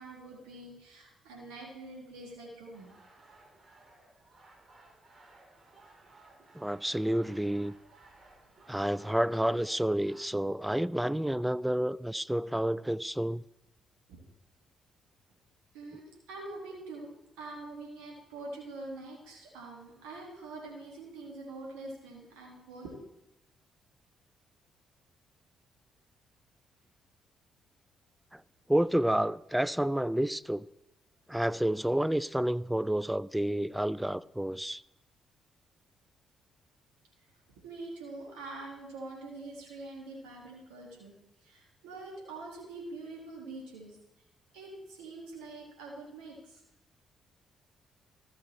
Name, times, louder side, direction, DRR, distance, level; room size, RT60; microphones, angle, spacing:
voice 1, 0.0-2.9 14.1-14.2 15.7-23.0 37.2-37.3 37.6-41.1 41.4-44.0 44.5-46.6, right 2 dB, 80° right, 1.6 m, -45 dB
sound 1, 2.7-10.3, right 2 dB, 40° right, 2.1 m, -59 dB
voice 2, 6.5-7.7 8.7-13.4 28.3-28.4 28.7-30.6 31.3-34.8, right 1 dB, 5° right, 0.3 m, -29 dB
13.5 x 5.2 x 4.2 m
hypercardioid pair, 40°, 0 cm